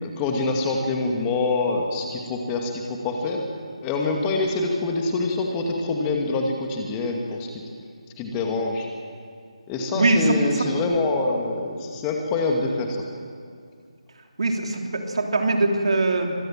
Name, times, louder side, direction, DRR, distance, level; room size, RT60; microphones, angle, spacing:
voice 1, 0.0-3.5 3.8-7.6 8.2-8.9 9.7-13.1, left 3 dB, 15° left, 1 dB, 2.3 m, -25 dB
voice 2, 9.9-10.7 14.4-16.4, right 2 dB, 60° right, 2 dB, 3.3 m, -22 dB
25.5 x 19.5 x 7.6 m, 2.2 s
figure-of-eight pair, 155°, 3 cm